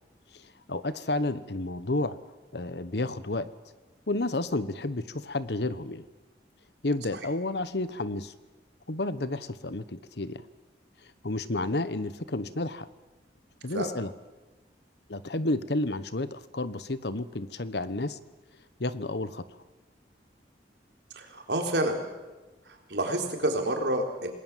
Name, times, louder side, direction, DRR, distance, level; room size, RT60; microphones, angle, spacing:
voice 1, 0.4-2.2 2.5-3.5 4.1-6.1 6.8-8.3 8.9-10.4 11.2-12.9 13.6-14.1 15.1-18.2 18.8-19.4, left 2 dB, 70° left, 14 dB, 1.2 m, -31 dB
voice 2, 21.1-22.0 22.9-24.3, right 1 dB, 80° right, 3 dB, 4.0 m, -28 dB
27.5 x 20.5 x 7.5 m, 1.2 s
head